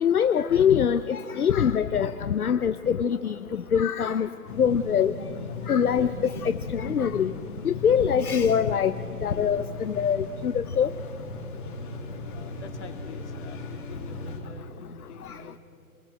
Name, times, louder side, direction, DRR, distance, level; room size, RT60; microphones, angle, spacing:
voice 1, 0.0-4.3 4.6-5.1 5.7-7.3 7.6-8.9 9.2-10.9, left 8 dB, 75° left, 11 dB, 0.9 m, -23 dB
sound 1, 4.5-14.4, left 3 dB, 35° left, 2.9 m, -37 dB
voice 2, 12.3-15.6, left 4 dB, 50° left, 4 dB, 3.3 m, -46 dB
27.0 x 21.5 x 7.9 m, 2.4 s
hypercardioid pair, 165°, 45 cm